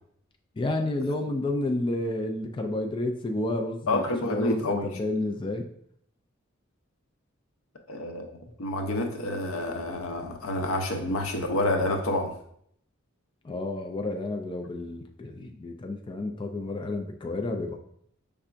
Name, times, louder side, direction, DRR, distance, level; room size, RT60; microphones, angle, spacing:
voice 1, 0.6-5.7 13.4-17.8, left 2 dB, 25° left, 3 dB, 0.3 m, -30 dB
voice 2, 3.9-4.9 7.9-8.3 8.6-12.3, left 1 dB, 85° left, 4 dB, 0.7 m, -28 dB
5.6 x 3.4 x 2.5 m, 0.67 s
head